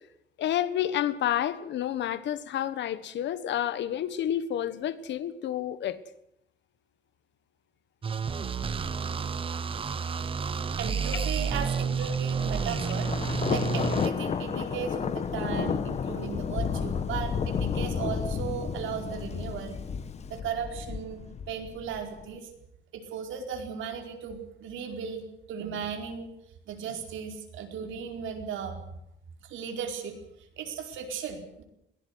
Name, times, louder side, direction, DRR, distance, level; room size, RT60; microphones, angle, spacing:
voice 1, 0.4-6.0 11.1-11.2, left 11 dB, 70° left, 1.5 m, -30 dB
sound 1, 8.0-14.1, right 6 dB, 30° right, 1.0 m, -30 dB
voice 2, 10.8-13.1 13.5-19.8 20.3-21.2 21.5-22.5 22.9-25.2 25.5-26.3 26.7-28.8 29.4-30.2 30.6-31.6, right 7 dB, 90° right, 4.6 m, -36 dB
Thunder, 12.4-22.2, left 6 dB, 35° left, 1.2 m, -32 dB
21.5 x 17.0 x 8.1 m
cardioid pair, 165°, 19 cm